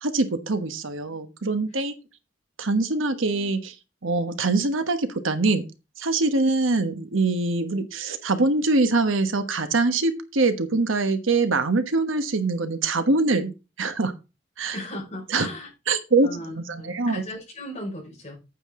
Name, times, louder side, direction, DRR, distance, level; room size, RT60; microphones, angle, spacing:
voice 1, 0.0-1.9 2.6-3.7 4.0-5.6 6.0-13.5 13.8-14.1 14.6-14.7 15.3-15.5 15.9-16.3 16.5-17.2, right 3 dB, 85° right, 9 dB, 1.2 m, -23 dB
voice 2, 14.7-15.7 16.2-18.4, left 1 dB, 35° left, -2 dB, 5.3 m, -37 dB
9.1 x 8.7 x 3.7 m, 0.28 s
head